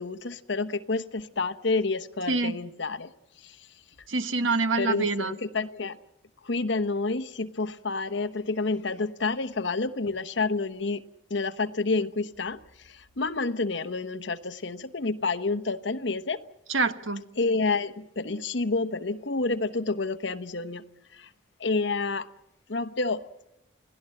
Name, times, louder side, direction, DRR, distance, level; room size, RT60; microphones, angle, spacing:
voice 1, 0.0-3.1 3.4-3.7 4.8-6.0 6.4-11.0 11.3-16.4 17.4-20.8 21.1-21.3 21.6-22.3 22.7-23.2, left 3 dB, 65° left, 1.0 m, -29 dB
voice 2, 4.1-5.3 16.7-17.2, right 3 dB, 85° right, 1.4 m, -26 dB
28.5 x 17.5 x 7.8 m
head